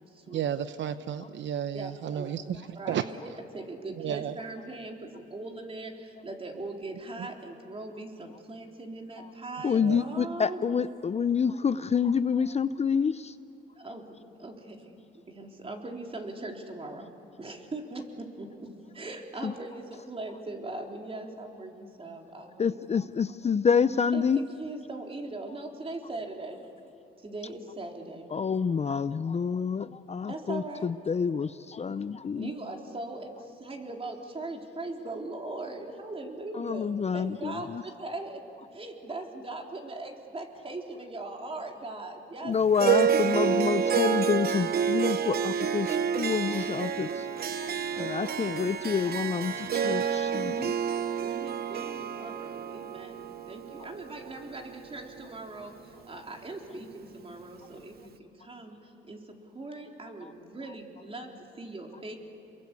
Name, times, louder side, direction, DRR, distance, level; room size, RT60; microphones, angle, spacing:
voice 1, 0.3-3.0 4.0-4.4 9.8-10.0, right 9 dB, 65° right, 11 dB, 0.8 m, -32 dB
voice 2, 1.7-2.4 2.8-5.9 6.2-10.6 13.8-14.0 14.4-14.8 15.3-17.1 17.4-18.0 18.4-18.5 19.0-22.8 24.1-26.6 27.2-28.3 30.3-30.9 32.4-33.3 33.6-38.4 38.7-42.5 46.6-47.0 47.4-48.1 50.9-53.2 53.5-55.7 56.1-57.9 58.5-58.8 59.1-59.2 59.6-61.3 61.6-62.2, right 2 dB, 30° right, 2 dB, 3.8 m, -40 dB
voice 3, 9.6-13.3 19.4-19.5 22.6-24.4 28.3-32.5 36.5-37.8 42.4-47.3 47.9-50.7 60.2-60.3, left 6 dB, 35° left, 14 dB, 0.6 m, -28 dB
Harp, 42.8-55.3, right 7 dB, 50° right, 1.1 m, -29 dB
28.5 x 22.5 x 8.4 m, 2.8 s
cardioid pair, 90°, 20 cm